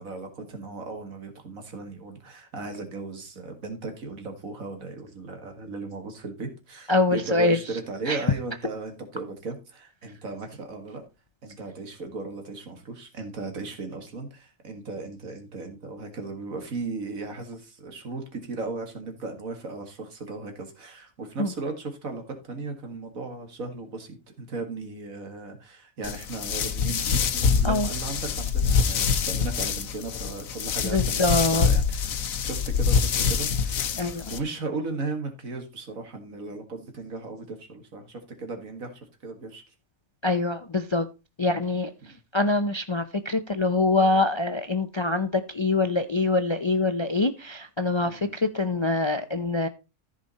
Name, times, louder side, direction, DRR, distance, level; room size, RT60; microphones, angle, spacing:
voice 1, 0.0-11.0 11.4-32.1 32.4-39.7 42.0-42.2 48.0-48.3, right 3 dB, 90° right, 2.2 m, -36 dB
voice 2, 6.9-7.6 8.1-8.2 21.4-21.5 27.6-27.9 30.8-31.7 34.0-34.3 40.2-41.1 41.4-41.9 42.3-49.7, left 2 dB, 40° left, 0.4 m, -24 dB
sound 1, 26.0-34.4, left 6 dB, 90° left, 1.3 m, -25 dB
14.0 x 5.0 x 4.1 m
omnidirectional pair, 1.4 m